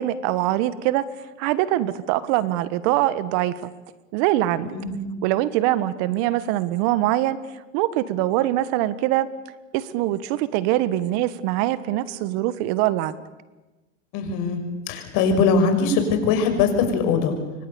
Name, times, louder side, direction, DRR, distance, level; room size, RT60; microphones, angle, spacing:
voice 1, 0.0-3.7 4.1-4.7 5.2-7.4 7.7-9.3 9.7-13.1, right 14 dB, 55° right, 16 dB, 1.4 m, -23 dB
voice 2, 14.1-14.6 14.9-17.3, left 5 dB, 55° left, 6 dB, 6.0 m, -21 dB
28.0 x 24.5 x 7.0 m, 1.1 s
hypercardioid pair, 115°, 39 cm